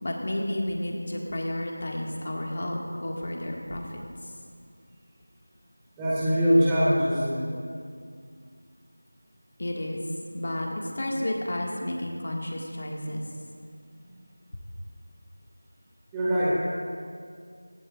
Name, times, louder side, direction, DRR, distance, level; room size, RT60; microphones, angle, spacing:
voice 1, 0.0-4.3 9.6-10.0 10.3-13.2, left 1 dB, 40° left, 0 dB, 1.9 m, -31 dB
voice 2, 6.0-7.4 16.1-16.6, equal, 5° right, -9 dB, 1.9 m, -22 dB
19.0 x 16.0 x 2.5 m, 2.2 s
figure-of-eight pair, 170°, 0 cm